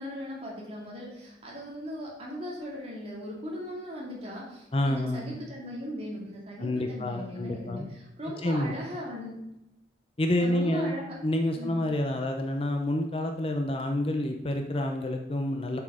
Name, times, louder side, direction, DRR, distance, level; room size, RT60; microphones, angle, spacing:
voice 1, 0.0-9.3 10.4-11.2 11.5-11.8, equal, 30° right, -3 dB, 2.3 m, -38 dB
voice 2, 4.7-5.3 6.6-7.8 8.4-8.8 10.2-10.9 11.2-15.8, left 1 dB, 30° left, 4 dB, 0.6 m, -28 dB
7.5 x 5.9 x 4.9 m, 0.91 s
head